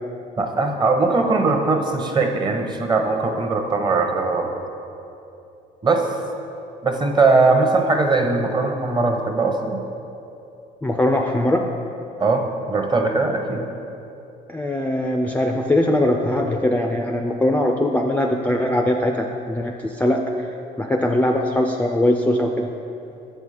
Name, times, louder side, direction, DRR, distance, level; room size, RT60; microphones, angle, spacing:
voice 1, 0.4-4.5 5.8-6.2 6.8-9.8 12.2-13.6, right 3 dB, 25° right, 4 dB, 0.8 m, -20 dB
voice 2, 10.8-11.7 14.5-20.2 20.8-22.7, left 1 dB, 10° left, 2 dB, 0.3 m, -21 dB
7.1 x 5.5 x 4.9 m, 2.8 s
cardioid pair, 110°, 17 cm